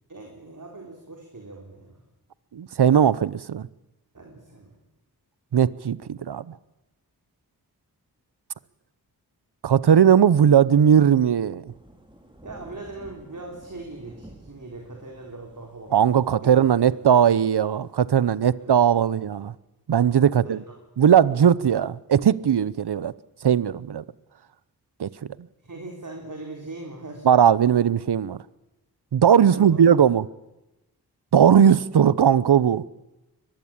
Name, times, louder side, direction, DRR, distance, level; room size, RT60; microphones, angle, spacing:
voice 1, 0.1-2.0 4.1-4.8 12.4-16.6 16.9-17.0 18.5-18.7 19.0-19.1 20.4-20.8 25.6-27.3 29.5-29.8, right 2 dB, 50° right, 4.1 m, -40 dB
voice 2, 2.5-3.7 5.5-6.5 9.6-11.6 15.9-19.5 19.9-20.6 21.0-23.1 23.4-24.0 25.0-25.1 27.2-28.4 29.1-30.2 31.3-32.8, right 8 dB, 80° right, 0.8 m, -18 dB
Thunder / Rain, 11.7-18.0, right 1 dB, 10° right, 4.0 m, -50 dB
23.0 x 21.0 x 8.8 m
wide cardioid pair, 75°, 39 cm